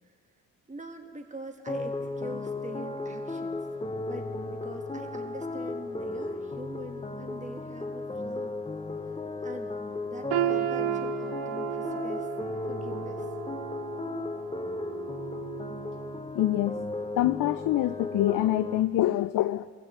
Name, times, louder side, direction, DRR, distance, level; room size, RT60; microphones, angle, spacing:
voice 1, 0.7-3.6 4.0-8.5 9.4-9.7 10.0-12.3 12.7-13.3, right 1 dB, 15° right, 6 dB, 1.4 m, -44 dB
sound 1, 1.7-18.8, left 2 dB, 15° left, 0.8 m, -35 dB
sound 2, 10.3-16.3 16.7-16.9 17.6-17.7, right 13 dB, 65° right, 0.8 m, -34 dB
voice 2, 16.3-16.8 17.1-19.7, left 14 dB, 50° left, 14 dB, 0.4 m, -25 dB
25.0 x 15.0 x 3.1 m, 2.1 s
hypercardioid pair, 45°, 43 cm